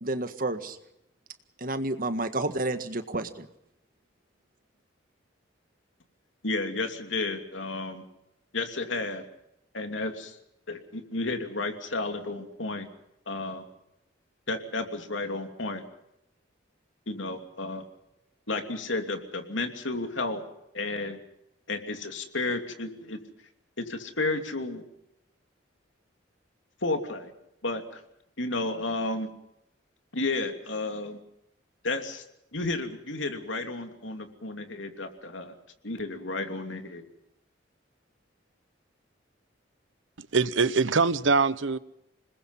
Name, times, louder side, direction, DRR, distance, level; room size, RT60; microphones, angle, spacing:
voice 1, 0.0-0.8 1.6-3.5, right 2 dB, 45° right, 9 dB, 1.7 m, -30 dB
voice 2, 6.4-8.0 8.5-9.3 9.7-10.4 10.7-12.9 13.3-13.6 14.5-15.8 17.1-17.8 18.5-20.4 20.7-21.2 21.7-23.2 23.8-24.8 26.8-27.3 27.6-28.0 28.4-29.3 30.1-31.2 31.8-32.2 32.5-35.5 35.8-37.0, left 2 dB, 85° left, 6 dB, 2.9 m, -32 dB
voice 3, 40.2-41.8, right 4 dB, 85° right, 16 dB, 1.0 m, -23 dB
26.5 x 21.0 x 5.7 m, 0.84 s
head